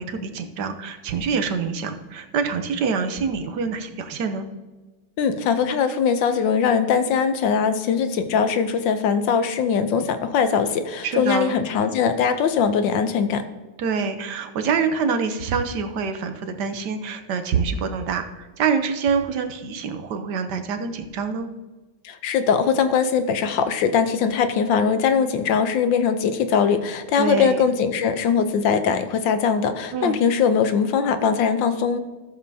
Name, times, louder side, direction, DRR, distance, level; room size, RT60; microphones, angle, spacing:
voice 1, 0.0-4.5 11.0-11.6 13.8-21.5 27.2-27.7 29.9-30.2, right 5 dB, 65° right, 8 dB, 1.3 m, -26 dB
voice 2, 5.2-13.5 22.0-32.0, left 6 dB, 70° left, 9 dB, 1.3 m, -21 dB
14.0 x 7.2 x 2.8 m, 1.2 s
omnidirectional pair, 2.2 m